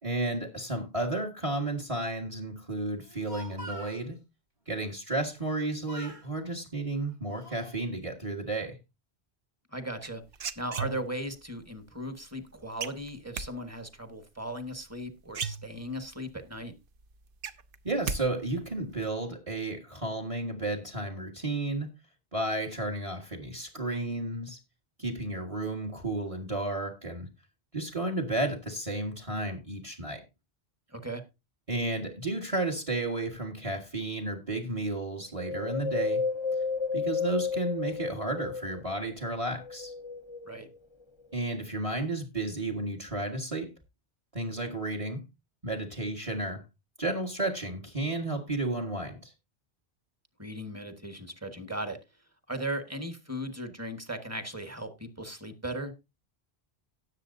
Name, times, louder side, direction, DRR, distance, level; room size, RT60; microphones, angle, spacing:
voice 1, 0.0-4.2 4.7-8.8 17.8-21.9 22.3-24.6 25.0-27.3 27.7-30.2 31.7-36.2 36.9-39.9 41.3-43.7 44.3-45.2 45.6-46.6 47.0-49.3, right 2 dB, 30° right, 4 dB, 1.8 m, -32 dB
Speech, 3.0-4.0 5.4-5.6 5.9-6.3 7.0-7.8, right 1 dB, 85° right, 3.3 m, -45 dB
voice 2, 9.7-10.2 10.6-16.7 30.9-31.2 40.4-40.7 50.4-52.0 52.5-55.9, right 1 dB, 15° right, 7 dB, 1.4 m, -37 dB
sound 1, 10.0-11.3 12.8-13.5 14.9-15.0 15.3-16.1 16.5-16.6 17.0-18.2 18.5-18.9, right 6 dB, 60° right, 0.9 m, -35 dB
Wind, 35.4-39.0 39.5-40.8 41.3-41.4, left 5 dB, 30° left, 0.7 m, -32 dB
17.5 x 7.5 x 2.7 m, 0.25 s
omnidirectional pair, 1.1 m